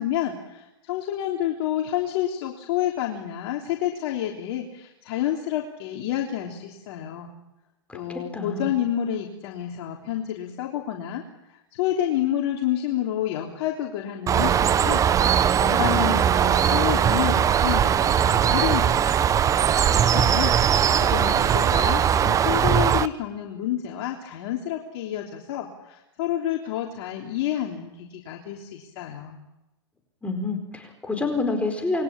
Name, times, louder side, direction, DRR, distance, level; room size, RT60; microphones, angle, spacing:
voice 1, 0.0-7.3 7.9-11.2 11.5-15.0 15.6-19.1 19.6-20.6 21.0-29.4, left 11 dB, 55° left, 0 dB, 3.5 m, -29 dB
voice 2, 7.9-8.7 30.2-32.0, left 3 dB, 10° left, 5 dB, 4.6 m, -28 dB
Bird, 14.3-23.1, right 8 dB, 20° right, 0.9 m, -20 dB
28.0 x 22.0 x 8.9 m, 0.95 s
hypercardioid pair, 120°, 15 cm